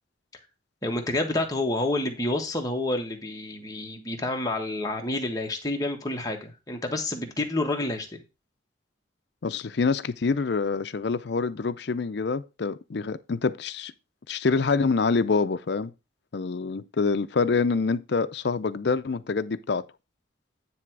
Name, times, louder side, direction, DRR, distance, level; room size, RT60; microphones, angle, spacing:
voice 1, 0.8-8.1, left 2 dB, 20° left, 1.4 m, -29 dB
voice 2, 9.4-13.9 14.3-15.9 16.3-19.9, left 4 dB, 55° left, 0.5 m, -26 dB
9.6 x 3.4 x 6.0 m
head